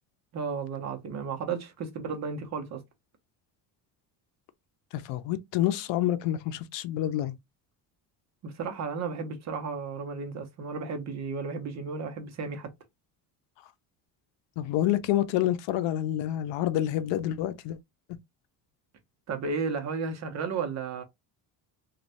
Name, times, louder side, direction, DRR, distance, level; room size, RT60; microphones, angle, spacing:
voice 1, 0.3-2.8 8.4-12.7 19.3-21.0, right 5 dB, 40° right, 0.7 m, -33 dB
voice 2, 4.9-7.4 14.6-17.8, left 13 dB, 80° left, 0.6 m, -28 dB
3.1 x 2.3 x 2.8 m
cardioid pair, 150°, 42 cm